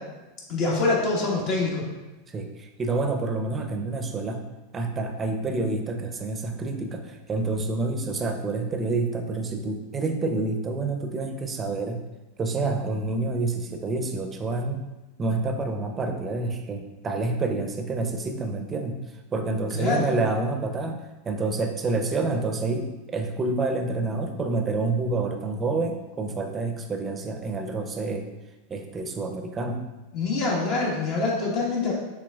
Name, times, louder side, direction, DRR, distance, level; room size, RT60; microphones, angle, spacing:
voice 1, 0.5-1.8 19.7-20.1 30.1-31.9, left 3 dB, 55° left, -3 dB, 1.5 m, -25 dB
voice 2, 2.3-4.4 4.7-12.0 12.4-14.8 15.2-19.0 19.3-28.3 28.7-29.9, right 3 dB, 25° right, 5 dB, 0.6 m, -28 dB
6.0 x 3.4 x 2.4 m, 1.1 s
hypercardioid pair, 100°, 0 cm